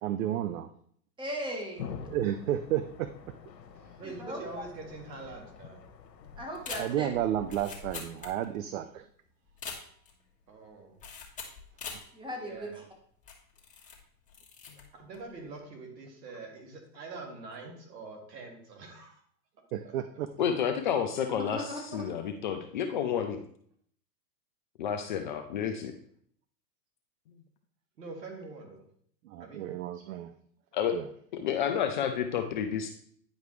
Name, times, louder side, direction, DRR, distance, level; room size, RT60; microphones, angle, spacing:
voice 1, 0.0-0.7 2.1-3.3 6.8-9.1 19.7-20.3 29.2-30.3 30.9-31.1, right 11 dB, 55° right, 11 dB, 0.5 m, -32 dB
voice 2, 1.2-1.9 4.0-4.7 6.4-7.1 12.1-12.8 21.3-22.0, equal, 10° right, 1 dB, 1.5 m, -38 dB
sound 1, 1.8-8.3, left 6 dB, 85° left, 1.2 m, -46 dB
voice 3, 3.8-5.9 10.5-11.0 12.4-12.8 14.9-19.2 19.8-19.9 28.0-28.9 29.4-29.7 31.5-31.7, right 3 dB, 85° right, 3 dB, 2.0 m, -45 dB
sound 2, 6.5-8.7 9.0-9.1 9.5-10.2 11.0-12.1 12.6-12.7 13.2-14.0 14.3-14.8 15.1-15.4, left 5 dB, 15° left, 1.4 m, -43 dB
voice 4, 20.4-23.4 24.8-25.9 30.7-31.0 31.3-32.9, left 8 dB, 35° left, 5 dB, 0.4 m, -30 dB
9.5 x 5.1 x 3.2 m, 0.62 s
hypercardioid pair, 130°, 49 cm